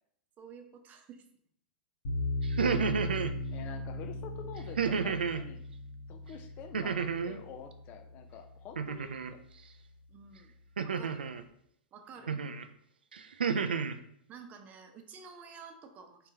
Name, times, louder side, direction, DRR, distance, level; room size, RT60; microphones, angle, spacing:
voice 1, 0.4-1.2 10.1-10.5 10.8-11.3 11.9-12.3 14.3-16.3, right 6 dB, 30° right, 7 dB, 0.7 m, -51 dB
sound 1, 2.0-9.1, left 2 dB, 65° left, 1.0 m, -38 dB
sound 2, 2.4-3.3 4.8-5.5 6.7-7.4 8.8-9.3 10.8-11.4 12.3-12.6 13.1-14.0, right 6 dB, 85° right, 0.3 m, -31 dB
voice 2, 3.5-5.6 6.1-9.4 12.2-12.5, left 7 dB, 40° left, 6 dB, 0.5 m, -48 dB
4.5 x 3.7 x 2.7 m, 0.68 s
hypercardioid pair, 105°, 5 cm